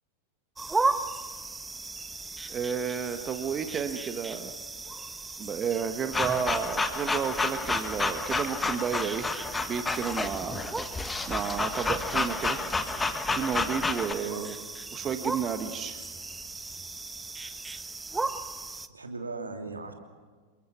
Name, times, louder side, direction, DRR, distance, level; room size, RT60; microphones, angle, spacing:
sound 1, 0.6-18.9, right 3 dB, 10° right, 1.1 m, -37 dB
voice 1, 2.5-4.5 5.4-9.3 9.7-10.6 11.3-12.6 13.3-14.6 14.9-16.0, right 7 dB, 25° right, 7 dB, 1.4 m, -31 dB
sound 2, 6.1-14.1, left 3 dB, 10° left, 1.5 m, -30 dB
voice 2, 18.9-19.9, right 3 dB, 75° right, 4 dB, 2.9 m, -38 dB
28.5 x 22.0 x 6.1 m, 1.5 s
figure-of-eight pair, 90°, 0 cm